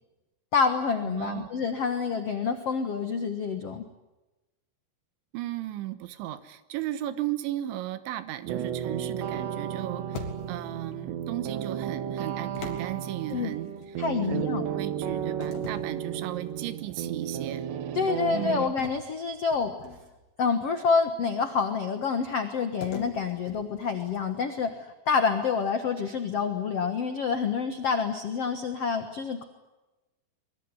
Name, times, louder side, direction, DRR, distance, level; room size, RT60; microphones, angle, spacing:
voice 1, 0.5-3.8 13.3-13.5 14.0-14.7 17.9-19.7 20.4-24.7 25.1-29.4, left 5 dB, 90° left, 7 dB, 1.3 m, -27 dB
voice 2, 1.0-1.5 5.3-14.0 14.3-17.7 18.3-18.7, right 14 dB, 90° right, 13 dB, 3.6 m, -35 dB
sound 1, 8.5-18.7, right 9 dB, 75° right, 3.7 m, -33 dB
sound 2, 10.1-10.8 12.6-13.9 15.4-16.7 17.2-17.5 18.8-20.3 22.8-24.5, left 5 dB, 60° left, 4.5 m, -42 dB
24.0 x 22.0 x 9.7 m, 1.0 s
omnidirectional pair, 5.1 m